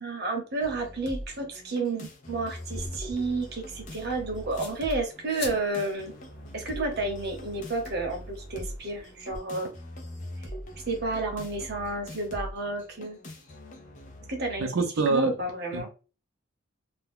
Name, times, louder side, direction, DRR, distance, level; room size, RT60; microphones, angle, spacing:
voice 1, 0.0-6.1 6.5-9.7 10.9-13.2 14.3-14.7 15.1-15.9, right 2 dB, 55° right, 0.9 m, -31 dB
sound 1, 0.6-14.6, equal, 40° left, 0.6 m, -42 dB
sound 2, 2.5-9.4, left 2 dB, 55° left, 1.2 m, -47 dB
voice 2, 14.6-15.3 15.7-15.9, right 3 dB, 85° right, 0.6 m, -25 dB
2.6 x 2.2 x 3.6 m
head